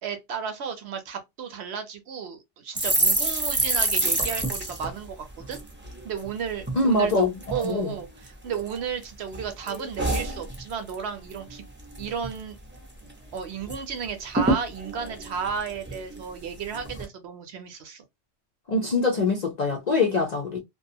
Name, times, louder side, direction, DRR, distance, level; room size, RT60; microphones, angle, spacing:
voice 1, 0.0-5.6 6.0-11.6 12.0-12.6 13.0-18.0, right 7 dB, 70° right, 0.8 m, -33 dB
sound 1, 2.7-6.3 6.6-6.8 7.1-7.7 8.2-9.0 9.3-11.0 11.3-11.5 11.8-12.4 12.7-12.8 13.1-13.8 14.0-14.1 14.3-16.2 16.7-17.0, right 2 dB, 15° right, 0.4 m, -27 dB
voice 2, 6.7-7.3 7.6-7.9 18.7-20.6, left 2 dB, 55° left, 0.4 m, -23 dB
2.4 x 2.3 x 2.6 m
omnidirectional pair, 1.2 m